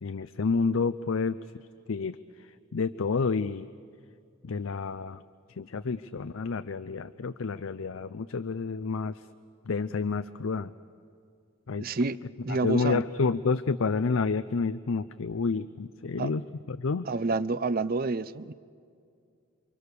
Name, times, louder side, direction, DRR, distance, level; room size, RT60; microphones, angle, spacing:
voice 1, 0.0-1.4 1.9-2.2 2.7-3.7 4.4-5.2 5.6-9.2 9.7-10.7 11.7-11.9 12.5-16.4 16.7-17.1, left 4 dB, 75° left, 13 dB, 0.6 m, -29 dB
voice 2, 11.8-13.0 16.2-16.3 17.1-18.5, right 3 dB, 45° right, 16 dB, 0.6 m, -29 dB
29.0 x 24.0 x 6.8 m, 2.3 s
head